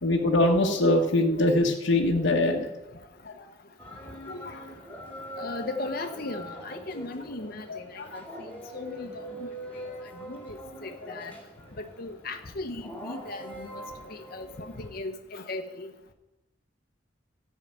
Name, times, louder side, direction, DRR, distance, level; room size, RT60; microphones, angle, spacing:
voice 1, 0.0-2.7 3.3-3.4 7.7-8.2, left 1 dB, 70° left, 0 dB, 1.1 m, -23 dB
voice 2, 0.6-1.0 1.4-1.5 4.3-4.6 5.4-9.1 9.4-9.5 10.3-11.3 11.8-13.8 14.1-15.9, left 2 dB, 50° left, 5 dB, 0.8 m, -37 dB
sound 1, 3.8-14.9, equal, 10° left, 2.2 m, -43 dB
13.5 x 5.6 x 8.7 m, 1.0 s
head